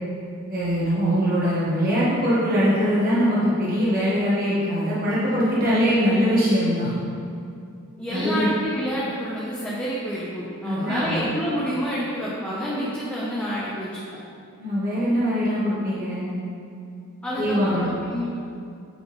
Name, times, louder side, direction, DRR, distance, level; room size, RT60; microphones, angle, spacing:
voice 1, 0.5-6.9 8.1-8.5 10.6-11.2 14.6-16.4 17.3-17.9, equal, 40° right, -8 dB, 1.2 m, -22 dB
voice 2, 8.0-13.9 17.2-18.3, equal, 5° left, -8 dB, 0.8 m, -28 dB
8.0 x 3.7 x 3.9 m, 2.5 s
head